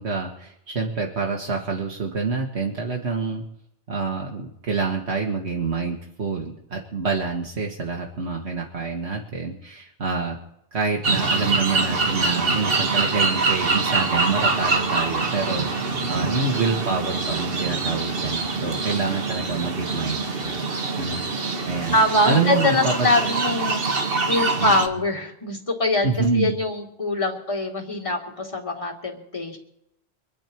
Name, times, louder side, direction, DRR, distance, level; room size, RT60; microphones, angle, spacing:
voice 1, 0.0-3.4 3.9-10.4 10.7-20.6 21.0-21.2 21.7-22.0 22.3-23.3 24.6-24.7 26.0-26.6, right 4 dB, 85° right, 0 dB, 1.9 m, -27 dB
sound 1, 11.0-24.9, right 3 dB, 60° right, 1.5 m, -24 dB
voice 2, 21.2-21.6 21.9-23.8 24.2-26.1 26.3-29.6, left 1 dB, 30° left, 0 dB, 2.5 m, -23 dB
25.0 x 10.0 x 4.6 m, 0.79 s
omnidirectional pair, 1.1 m